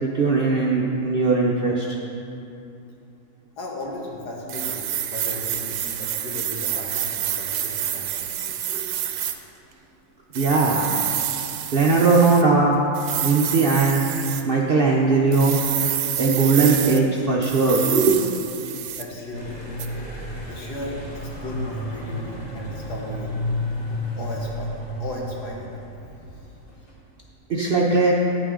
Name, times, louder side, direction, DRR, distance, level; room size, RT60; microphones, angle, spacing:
voice 1, 0.0-2.0 8.7-8.9 10.3-11.0 11.7-12.8 13.2-14.1 14.4-15.6 16.2-18.2 27.5-28.1, right 4 dB, 55° right, -2 dB, 0.6 m, -19 dB
voice 2, 3.6-8.6 19.0-19.6 20.4-23.4 24.2-24.7 25.0-25.7, left 2 dB, 75° left, -2 dB, 1.9 m, -35 dB
sound 1, 4.5-9.4 10.3-12.4 12.9-14.4 15.3-17.0 17.4-19.1 19.8-19.9, right 10 dB, 75° right, 1.1 m, -28 dB
sound 2, 19.3-26.9, left 1 dB, 25° left, 1.7 m, -32 dB
10.0 x 8.7 x 3.7 m, 2.7 s
omnidirectional pair, 1.8 m